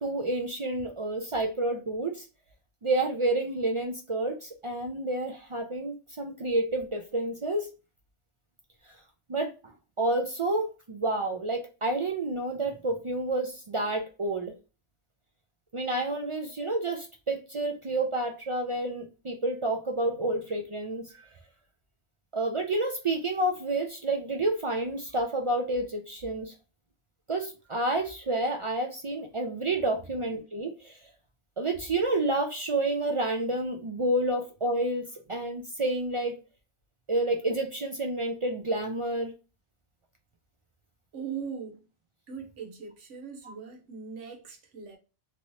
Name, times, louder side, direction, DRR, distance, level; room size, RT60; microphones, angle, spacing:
voice 1, 0.0-2.3 2.8-7.7 9.3-9.5 10.0-14.5 15.7-21.1 22.3-26.5 27.3-30.9 31.6-36.4 37.1-39.3 43.4-43.5, right 2 dB, 55° right, 0.3 m, -29 dB
voice 2, 41.1-41.9 42.3-45.0, right 6 dB, 90° right, 1.3 m, -40 dB
3.0 x 2.7 x 3.0 m
omnidirectional pair, 1.2 m